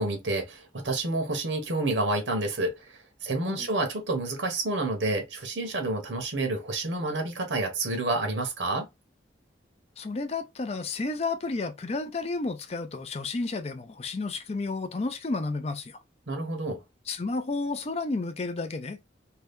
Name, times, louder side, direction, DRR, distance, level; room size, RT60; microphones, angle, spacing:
voice 1, 0.0-8.9 16.3-16.8, right 2 dB, 85° right, 0.9 m, -29 dB
voice 2, 10.0-16.0 17.1-19.0, left 3 dB, 35° left, 0.5 m, -31 dB
2.7 x 2.2 x 3.4 m
head